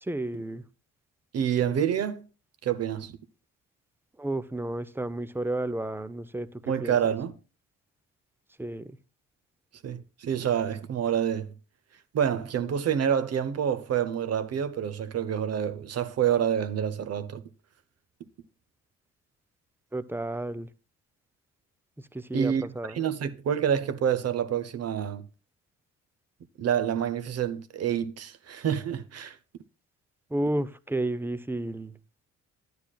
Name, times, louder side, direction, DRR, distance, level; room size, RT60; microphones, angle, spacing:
voice 1, 0.0-0.6 4.2-7.0 8.6-9.0 19.9-20.7 22.1-23.0 30.3-31.9, right 1 dB, 5° right, 0.5 m, -32 dB
voice 2, 1.3-2.2 2.6-3.1 6.7-7.3 9.8-11.5 12.1-17.4 22.3-22.6 22.9-25.2 26.6-29.4, right 9 dB, 55° right, 0.7 m, -27 dB
11.5 x 9.4 x 2.3 m
cardioid pair, 90°, 30 cm